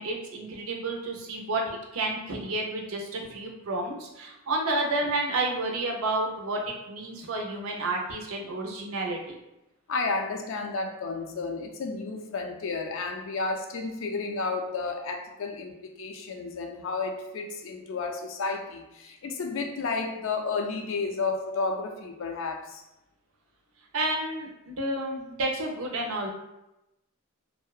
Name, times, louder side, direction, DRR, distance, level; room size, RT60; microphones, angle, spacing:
voice 1, 0.0-9.4 23.9-26.3, right 2 dB, 90° right, 1 dB, 0.5 m, -30 dB
voice 2, 9.9-22.8, left 4 dB, 70° left, 4 dB, 0.4 m, -32 dB
2.6 x 2.1 x 2.3 m, 0.92 s
head